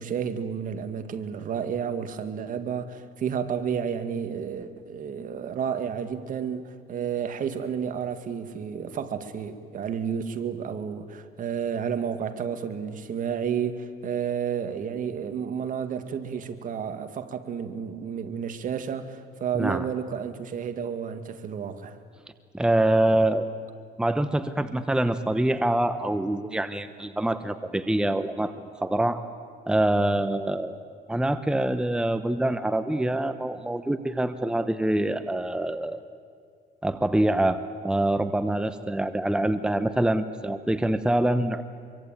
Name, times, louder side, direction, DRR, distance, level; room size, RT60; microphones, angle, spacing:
voice 1, 0.0-22.0, right 7 dB, 50° right, 1.9 m, -31 dB
voice 2, 22.5-23.5 24.0-28.5 28.8-29.2 29.7-30.8 31.1-36.0 36.8-41.6, right 1 dB, 5° right, 1.0 m, -25 dB
25.0 x 24.0 x 9.0 m
cardioid pair, 110°, 17 cm